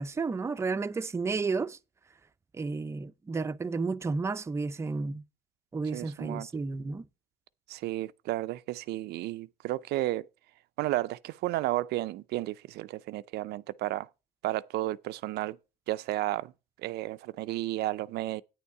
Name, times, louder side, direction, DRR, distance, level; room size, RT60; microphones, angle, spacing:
voice 1, 0.0-1.8 2.5-5.2 5.7-7.1, right 4 dB, 15° right, 0.4 m, -32 dB
voice 2, 5.9-6.5 7.7-10.3 10.8-14.1 14.4-15.6 15.9-16.5 16.8-18.4, right 16 dB, 75° right, 0.4 m, -32 dB
9.3 x 7.0 x 4.7 m
cardioid pair, 110°, 17 cm